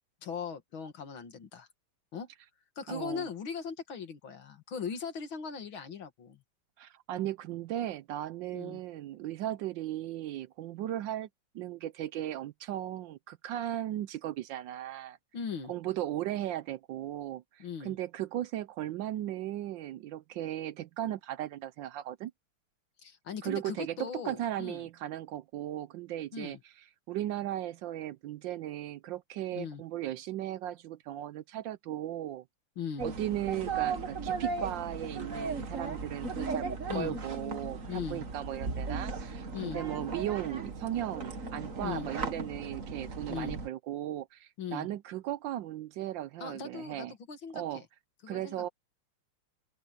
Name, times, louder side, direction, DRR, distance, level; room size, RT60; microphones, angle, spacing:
voice 1, 0.2-1.7 2.1-2.3 2.8-6.4 8.5-8.8 15.3-15.7 17.6-18.0 23.0-24.9 26.3-26.6 29.5-29.8 32.8-33.1 36.9-37.2 37.9-38.2 39.5-39.8 41.8-42.1 43.3-43.6 44.6-44.9 46.4-47.9 48.2-48.7, left 6 dB, 70° left, 2.7 m, -39 dB
voice 2, 2.9-3.3 6.8-11.3 11.5-15.2 15.7-22.3 23.4-26.6 27.1-32.4 33.0-47.1 47.5-47.8 48.3-48.7, right 13 dB, 75° right, 1.2 m, -37 dB
sound 1, 33.0-43.7, right 4 dB, 40° right, 2.0 m, -37 dB
open air
omnidirectional pair, 2.3 m